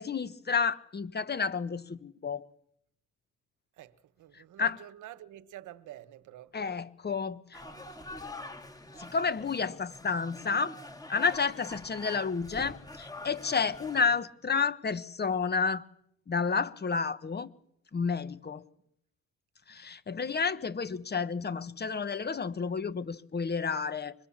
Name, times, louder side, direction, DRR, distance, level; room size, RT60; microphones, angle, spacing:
voice 1, 0.0-2.5 4.3-4.8 6.5-7.6 8.9-10.8 11.1-15.8 16.3-17.5 17.9-18.6 19.7-24.1, left 5 dB, 35° left, 1.3 m, -31 dB
voice 2, 3.8-6.7, right 13 dB, 80° right, 1.2 m, -48 dB
sound 1, 7.5-14.2, left 2 dB, 10° left, 2.4 m, -45 dB
25.0 x 21.5 x 7.3 m
cardioid pair, 90°, 30 cm